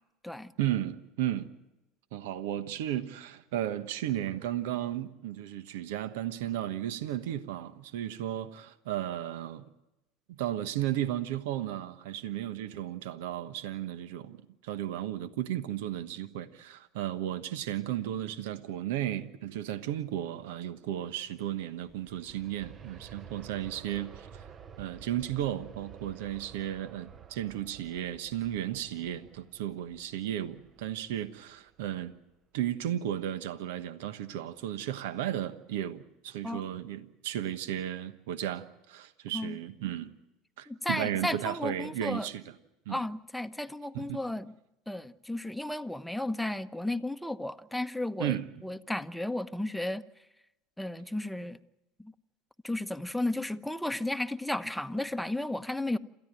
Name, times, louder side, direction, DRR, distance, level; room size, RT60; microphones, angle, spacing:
voice 1, 0.6-1.5 2.1-9.7 10.3-14.4 14.6-24.5 24.8-32.1 32.5-40.1 40.6-42.4 42.9-43.0 43.9-44.2 48.2-48.4, right 12 dB, 75° right, 1.2 m, -34 dB
Aircraft, 21.5-32.2 32.6-32.7, right 7 dB, 35° right, 1.1 m, -51 dB
voice 2, 40.7-42.3 42.9-44.5 44.9-50.0 50.8-51.6 52.0-52.1 52.6-56.0, left 1 dB, ahead, 1.0 m, -34 dB
28.5 x 14.0 x 9.0 m
hypercardioid pair, 80°, 0 cm